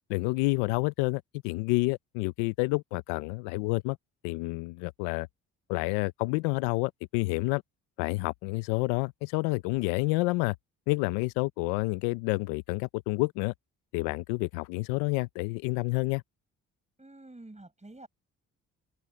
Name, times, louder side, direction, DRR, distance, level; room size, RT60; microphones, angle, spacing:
voice 1, 0.1-4.0 4.2-5.3 5.7-7.6 8.0-10.6 10.9-13.5 13.9-16.2, left 24 dB, 85° left, 0.8 m, -29 dB
voice 2, 17.0-18.1, right 2 dB, 15° right, 6.5 m, -48 dB
open air
hypercardioid pair, 50°, 38 cm